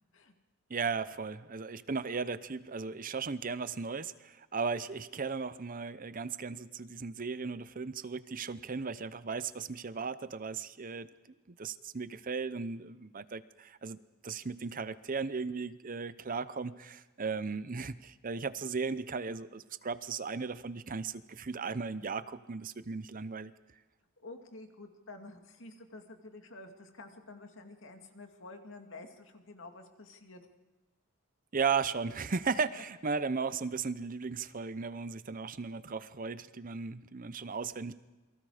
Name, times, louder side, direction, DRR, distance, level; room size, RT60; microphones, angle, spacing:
voice 1, 0.7-11.1 11.6-23.5 31.5-37.9, right 5 dB, 40° right, 14 dB, 0.7 m, -36 dB
voice 2, 24.2-30.4, left 2 dB, 60° left, 5 dB, 2.4 m, -50 dB
28.5 x 23.0 x 5.0 m, 1.1 s
head